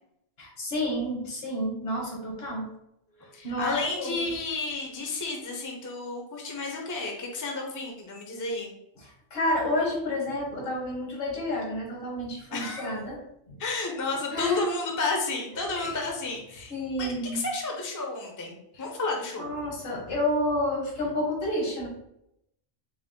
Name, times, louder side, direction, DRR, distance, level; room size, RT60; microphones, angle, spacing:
voice 1, 0.4-2.7 3.2-4.2 9.0-13.2 13.5-13.6 14.3-14.6 15.8-15.9 16.7-17.4 18.8-18.9 19.4-21.9, left 1 dB, 70° left, -1 dB, 1.3 m, -30 dB
voice 2, 3.3-8.7 12.5-12.9 13.6-16.7 17.0-19.5, left 3 dB, 20° left, 0 dB, 0.5 m, -32 dB
4.6 x 2.0 x 3.7 m, 0.79 s
omnidirectional pair, 1.1 m